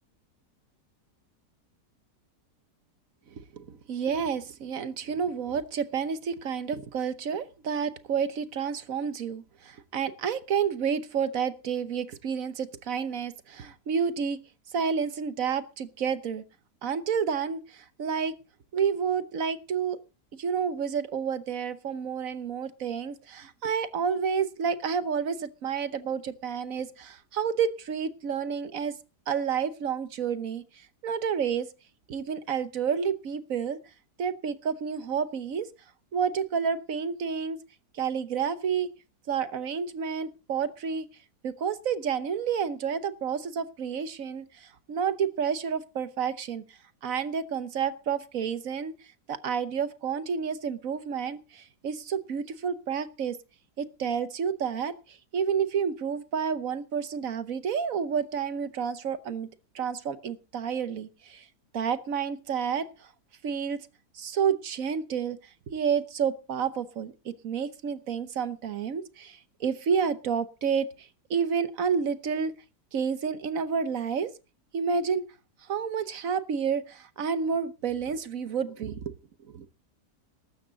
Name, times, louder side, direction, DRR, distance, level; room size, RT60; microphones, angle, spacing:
voice 1, 3.5-14.4 14.7-16.4 16.8-18.3 18.7-20.0 20.4-28.9 29.3-30.6 31.0-31.7 32.1-33.8 34.2-35.7 36.1-37.6 37.9-38.9 39.3-41.1 41.4-46.6 47.0-48.9 49.3-53.4 53.8-59.5 59.7-61.4 61.7-63.1 63.4-63.8 64.1-65.4 65.7-72.5 72.9-74.3 74.7-75.2 75.7-79.1 79.5-79.7, right 7 dB, 60° right, 13 dB, 1.3 m, -30 dB
14.5 x 12.5 x 4.0 m, 0.32 s
omnidirectional pair, 1.7 m